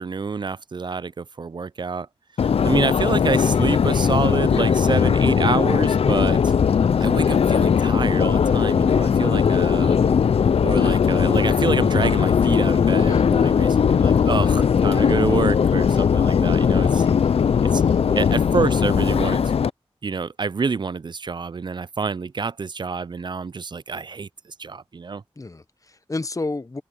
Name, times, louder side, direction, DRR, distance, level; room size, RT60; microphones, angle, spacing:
voice 1, 0.0-2.1 2.4-6.5 7.0-10.0 10.6-17.0 17.7-17.8 18.1-19.6 20.0-24.3 24.6-25.2, right 4 dB, 50° right, 0.4 m, -27 dB
Subway metro underground, 2.4-19.7, left 7 dB, 80° left, 0.4 m, -19 dB
voice 2, 9.3-9.7 13.0-13.3 17.0-17.3 17.8-18.0 25.4-26.8, left 2 dB, 35° left, 0.8 m, -32 dB
cardioid pair, 50°, 10 cm